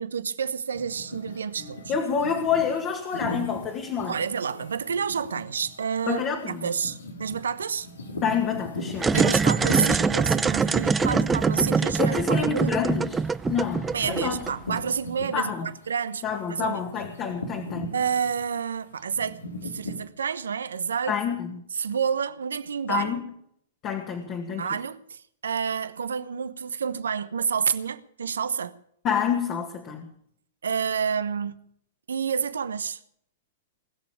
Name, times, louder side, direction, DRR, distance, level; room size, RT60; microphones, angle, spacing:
voice 1, 0.0-1.8 4.0-7.9 9.1-12.8 13.9-16.8 17.9-21.4 21.7-23.2 24.6-28.8 30.6-31.7 32.1-33.0, right 6 dB, 75° right, 1.0 m, -29 dB
sound 1, 0.7-15.9 16.2-20.1, left 2 dB, 85° left, 2.6 m, -38 dB
voice 2, 1.9-4.2 6.1-6.7 8.2-9.2 11.0-11.4 12.0-14.4 15.3-15.7 16.2-17.9 21.1-21.6 22.9-23.3 23.8-24.7 29.0-30.1, left 7 dB, 35° left, 2.1 m, -28 dB
sound 2, 8.9-14.8, right 5 dB, 15° right, 0.6 m, -24 dB
20.0 x 7.0 x 8.5 m
hypercardioid pair, 110°, 0 cm